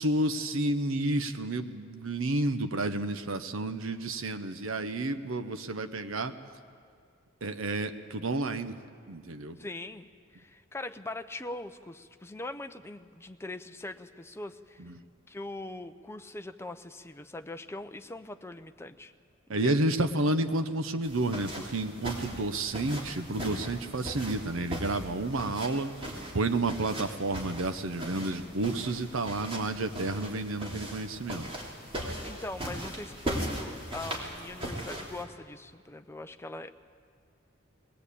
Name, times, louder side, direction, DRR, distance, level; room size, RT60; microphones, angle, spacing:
voice 1, 0.0-6.3 7.4-8.8 9.1-9.6 14.8-14.9 19.5-31.4, right 2 dB, 75° right, 8 dB, 0.9 m, -30 dB
voice 2, 9.6-10.1 10.3-14.8 15.3-19.1 19.6-19.8 32.2-36.7, left 2 dB, 15° left, 7 dB, 0.7 m, -41 dB
sound 1, 21.0-35.2, right 1 dB, 30° right, 3.3 m, -39 dB
21.0 x 18.5 x 8.4 m, 2.2 s
head